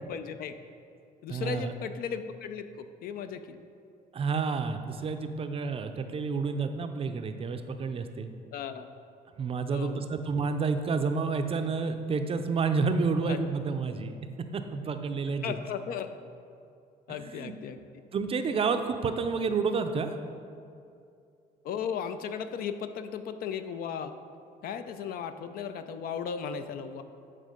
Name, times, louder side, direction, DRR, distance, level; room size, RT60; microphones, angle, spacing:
voice 1, 0.1-0.5 1.2-3.6 8.5-8.9 9.7-10.1 13.3-13.4 15.4-16.1 17.1-17.8 21.6-24.1 24.6-27.0, left 7 dB, 60° left, 9 dB, 0.4 m, -36 dB
voice 2, 1.3-1.7 4.1-8.3 9.4-14.2 14.5-15.6 17.1-17.5 18.1-20.2, right 4 dB, 35° right, 7 dB, 0.5 m, -30 dB
8.4 x 3.6 x 5.1 m, 2.5 s
cardioid pair, 110°, 17 cm